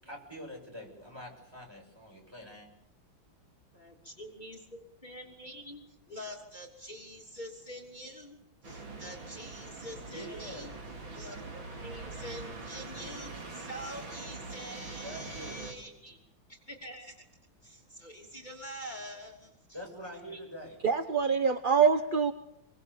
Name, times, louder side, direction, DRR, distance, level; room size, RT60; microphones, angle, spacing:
voice 1, 0.0-2.7 10.0-10.7 15.0-16.2 19.7-20.8, equal, 10° right, 0 dB, 7.2 m, -45 dB
voice 2, 3.7-5.8 6.1-8.4 8.6-10.7 11.1-11.4 11.8-16.2 16.5-17.1 17.6-19.6 20.3-20.4, equal, 20° left, 1 dB, 3.3 m, -45 dB
sound 1, 8.6-15.7, right 3 dB, 70° right, 3.9 m, -43 dB
voice 3, 20.8-22.3, right 6 dB, 35° right, 7 dB, 0.8 m, -25 dB
26.5 x 23.5 x 7.1 m, 0.78 s
omnidirectional pair, 2.2 m